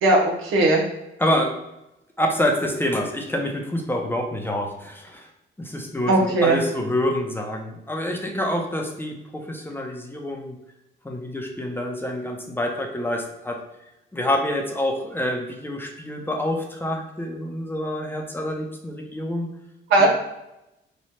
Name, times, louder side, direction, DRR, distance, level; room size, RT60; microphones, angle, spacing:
voice 1, 0.0-0.8 6.1-6.6 19.9-20.1, right 2 dB, 85° right, -1 dB, 0.9 m, -18 dB
voice 2, 1.2-1.5 2.2-5.3 5.6-10.6 11.0-13.6 14.1-19.5 20.0-20.1, left 1 dB, 10° left, 2 dB, 0.6 m, -27 dB
3.1 x 2.3 x 4.2 m, 0.89 s
cardioid pair, 90°, 20 cm